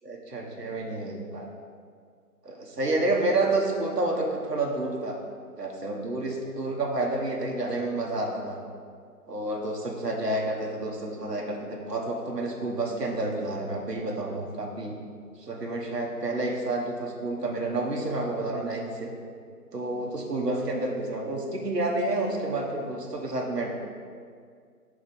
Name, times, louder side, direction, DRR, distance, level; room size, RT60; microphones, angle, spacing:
voice 1, 0.0-1.5 2.4-5.2 5.6-8.6 9.3-15.0 15.4-19.1 19.7-23.7, right 2 dB, 85° right, -1 dB, 1.1 m, -29 dB
5.0 x 4.0 x 5.4 m, 2.1 s
figure-of-eight pair, 150°, 47 cm